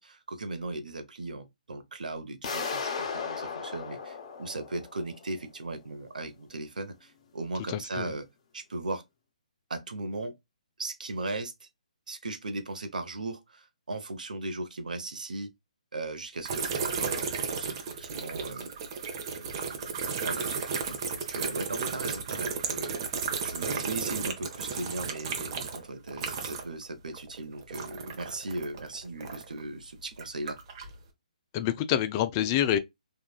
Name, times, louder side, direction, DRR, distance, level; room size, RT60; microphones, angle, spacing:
voice 1, 0.0-8.3 8.5-9.0 9.7-10.3 10.8-11.7 12.1-15.5 15.9-18.7 19.3-23.0 23.4-30.6, right 2 dB, 80° right, 0.9 m, -38 dB
sound 1, 2.4-5.3, left 5 dB, 45° left, 0.9 m, -35 dB
voice 2, 7.7-8.1 31.5-32.8, left 11 dB, 25° left, 0.3 m, -27 dB
sound 2, 16.4-26.8 27.1-29.6 30.1-30.9, right 6 dB, 40° right, 0.7 m, -34 dB
3.6 x 2.3 x 2.3 m
hypercardioid pair, 145°, 4 cm